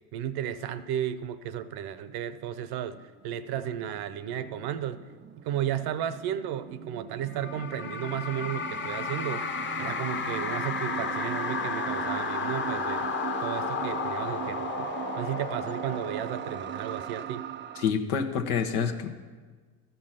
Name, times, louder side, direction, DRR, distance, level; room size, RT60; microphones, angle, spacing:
voice 1, 0.1-3.0 3.2-5.0 5.4-9.5 9.8-13.1 13.4-17.5, right 10 dB, 60° right, 13 dB, 0.7 m, -33 dB
sound 1, 2.4-2.5 2.7-17.9, right 10 dB, 30° right, 0.4 m, -39 dB
sound 2, 7.3-17.0, left 5 dB, 25° left, 0.8 m, -33 dB
voice 2, 17.8-19.1, left 6 dB, 90° left, 6 dB, 1.0 m, -27 dB
13.5 x 5.5 x 5.6 m, 1.5 s
hypercardioid pair, 75°, 44 cm